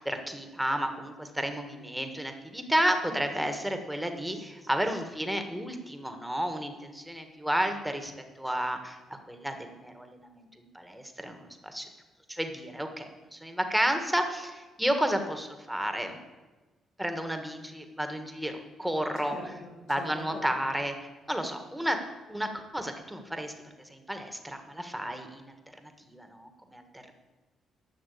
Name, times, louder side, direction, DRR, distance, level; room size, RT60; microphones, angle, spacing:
voice 1, 0.0-9.0 9.3-11.8 12.3-16.2 17.0-19.4 19.9-22.0 22.3-23.5 23.9-27.1, equal, 5° right, 6 dB, 1.6 m, -32 dB
voice 2, 3.0-3.4 19.2-20.4, left 2 dB, 85° left, -3 dB, 5.0 m, -43 dB
12.0 x 6.1 x 8.5 m, 1.2 s
cardioid pair, 90°, 0 cm